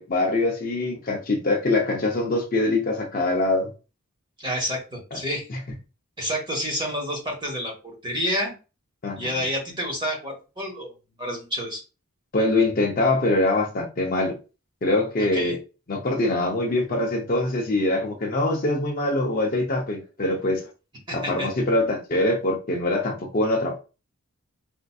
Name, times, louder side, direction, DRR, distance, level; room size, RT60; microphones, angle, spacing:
voice 1, 0.0-3.7 5.1-5.2 5.5-5.6 9.0-9.3 12.3-14.3 14.8-15.6 15.9-20.7 21.1-23.8, left 2 dB, 40° left, 0.5 m, -23 dB
voice 2, 4.4-5.5 6.2-7.7 8.0-8.5 9.1-10.9 11.2-11.8 15.2-15.6 21.1-21.5, equal, 20° right, 1.1 m, -29 dB
4.4 x 2.5 x 2.3 m
head